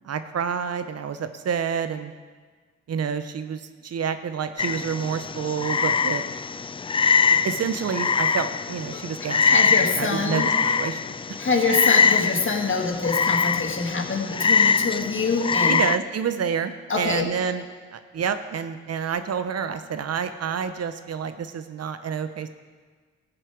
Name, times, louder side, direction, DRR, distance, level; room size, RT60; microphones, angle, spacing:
voice 1, 0.0-2.1 2.9-6.2 7.4-11.0 11.3-11.4 15.7-17.6 17.9-22.5, right 7 dB, 50° right, 10 dB, 0.8 m, -28 dB
Ringtone, 4.6-4.9 5.5-5.7 6.4-6.6 7.2-7.5 8.1-8.4 8.9-9.3 9.8-10.2 10.6-11.1 11.4-11.5, left 6 dB, 80° left, 1.4 m, -46 dB
Frog, 4.6-16.0, left 5 dB, 20° left, 0.3 m, -23 dB
voice 2, 9.4-10.5 11.4-15.8 16.9-17.3, left 4 dB, 40° left, 2 dB, 2.2 m, -25 dB
14.0 x 7.6 x 4.8 m, 1.5 s
hypercardioid pair, 50°, 31 cm